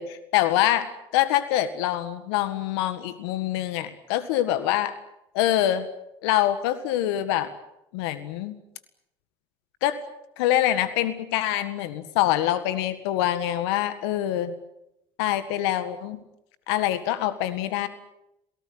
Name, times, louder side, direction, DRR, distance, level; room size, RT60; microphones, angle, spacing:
voice 1, 0.0-4.9 5.3-5.9 6.2-7.5 7.9-8.5 9.8-10.0 10.4-14.5 15.2-16.2 16.7-17.9, left 13 dB, 80° left, 12 dB, 1.8 m, -25 dB
27.5 x 18.5 x 9.7 m, 0.84 s
hypercardioid pair, 70°, 13 cm